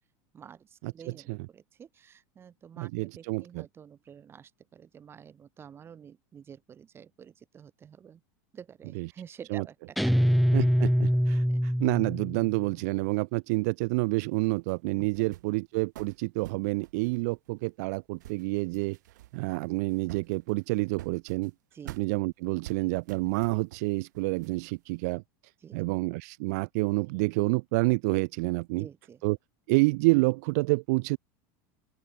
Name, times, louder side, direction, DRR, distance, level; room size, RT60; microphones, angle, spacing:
voice 1, 0.3-8.2 8.5-10.3 11.5-11.6 15.2-15.6 21.7-22.0 25.6-25.8 28.7-29.2, right 8 dB, 25° right, 5.9 m, -49 dB
voice 2, 2.8-3.6 8.9-9.1 9.5-9.6 10.5-19.0 19.3-21.5 22.0-25.2 25.7-28.8 29.2-29.4 29.7-31.2, right 26 dB, 65° right, 0.7 m, -28 dB
Guitar, 10.0-12.6, equal, ahead, 0.5 m, -24 dB
sound 1, 14.4-15.6 15.9-17.9 18.2-19.6 19.9-21.5 21.9-22.1 22.6-23.9 24.1-25.0, right 16 dB, 80° right, 3.3 m, -48 dB
open air
supercardioid pair, 135°, 10 cm